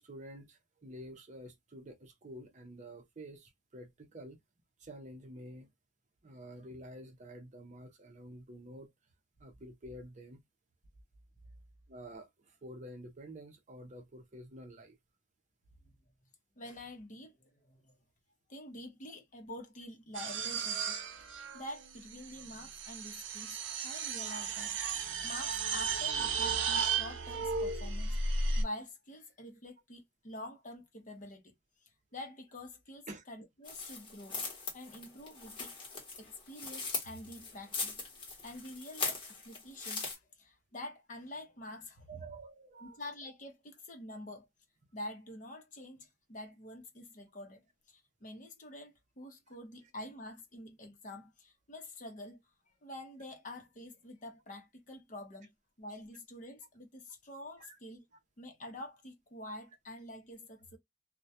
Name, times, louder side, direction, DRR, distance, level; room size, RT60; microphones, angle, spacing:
voice 1, 0.0-4.4 4.8-5.7 6.2-8.9 9.4-10.4 11.9-15.0 33.1-33.2 42.1-43.0 57.6-57.8, right 1 dB, 40° right, 0.6 m, -49 dB
voice 2, 16.6-17.9 18.5-21.0 21.5-24.8 25.2-31.5 32.1-34.4 34.7-35.8 36.2-42.3 42.8-44.5 44.9-52.4 52.8-55.5 55.8-58.0 58.4-60.8, left 1 dB, 45° left, 0.7 m, -47 dB
sound 1, 20.2-28.6, right 4 dB, 85° right, 0.5 m, -34 dB
sound 2, 33.6-40.1, left 4 dB, 25° left, 1.0 m, -40 dB
2.2 x 2.1 x 2.6 m
head